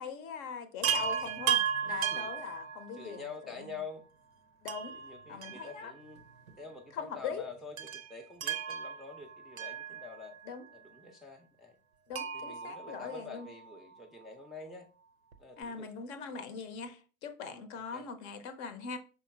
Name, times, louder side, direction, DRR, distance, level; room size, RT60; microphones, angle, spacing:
voice 1, 0.0-3.8 4.6-5.0 5.3-5.9 6.9-7.5 10.4-10.7 12.1-13.5 15.6-19.0, left 6 dB, 55° left, 0.7 m, -41 dB
Chime, 0.8-3.3 4.7-6.2 6.5-6.6 7.8-10.5 12.1-13.7 15.3-15.4 15.6-15.7, right 8 dB, 80° right, 0.5 m, -35 dB
voice 2, 1.9-2.3 2.9-4.1 4.9-6.2 6.6-10.4 10.7-11.8 12.3-14.9 15.4-15.9 17.5-18.1, left 4 dB, ahead, 0.4 m, -47 dB
5.6 x 3.9 x 2.2 m
figure-of-eight pair, 60°, 41 cm